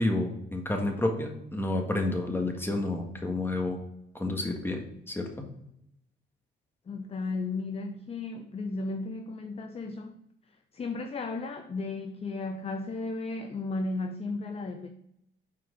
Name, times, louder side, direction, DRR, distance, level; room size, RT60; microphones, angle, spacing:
voice 1, 0.0-3.8 4.2-4.8 5.1-5.3, left 2 dB, 10° left, 1.6 m, -29 dB
voice 2, 6.9-10.2 10.7-14.9, left 3 dB, 30° left, 0.6 m, -34 dB
6.0 x 4.6 x 6.1 m
cardioid pair, 90°, 20 cm